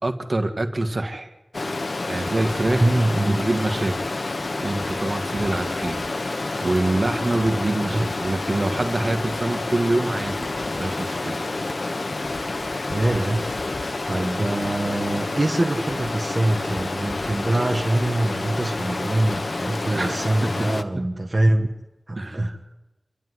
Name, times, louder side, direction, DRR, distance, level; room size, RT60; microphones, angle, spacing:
voice 1, 0.0-1.3 2.1-2.9 3.2-4.2 4.6-11.4 19.9-20.7 22.2-22.6, right 2 dB, 55° right, 6 dB, 1.9 m, -26 dB
Stream, 1.5-20.8, left 2 dB, 75° left, 1.3 m, -29 dB
voice 2, 2.8-3.4 7.9-8.1 12.9-13.5 14.1-21.7 22.1-22.6, right 1 dB, 40° right, 2 dB, 1.5 m, -24 dB
27.0 x 12.5 x 9.7 m, 1.1 s
wide cardioid pair, 60°, 0 cm